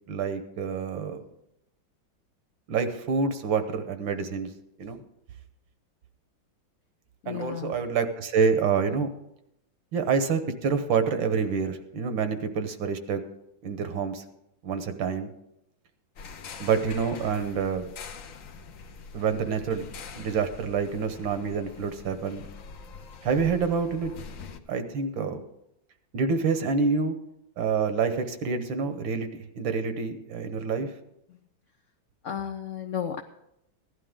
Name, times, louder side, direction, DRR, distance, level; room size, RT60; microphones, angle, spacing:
voice 1, 0.1-1.2 2.7-4.5 4.8-5.0 7.3-9.1 9.9-13.2 13.6-14.2 14.6-15.3 16.6-17.9 19.1-22.4 23.2-24.1 24.7-25.4 26.1-27.2 27.6-30.9, right 5 dB, 80° right, 9 dB, 1.7 m, -27 dB
voice 2, 7.2-7.8 31.3-31.4 32.2-33.2, left 8 dB, 75° left, 5 dB, 0.6 m, -34 dB
sound 1, 16.2-24.6, left 5 dB, 55° left, 0.9 m, -44 dB
16.0 x 11.5 x 3.7 m, 0.80 s
omnidirectional pair, 2.1 m